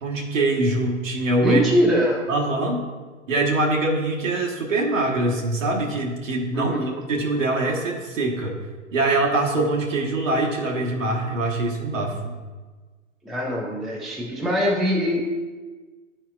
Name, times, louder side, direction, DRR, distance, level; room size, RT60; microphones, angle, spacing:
voice 1, 0.0-1.6 2.3-2.8 3.3-8.6 8.9-12.3, right 2 dB, 75° right, 0 dB, 1.3 m, -23 dB
voice 2, 1.4-2.3 6.5-7.0 13.2-15.2, equal, ahead, -3 dB, 0.4 m, -23 dB
10.0 x 4.5 x 2.4 m, 1.4 s
hypercardioid pair, 110°, 39 cm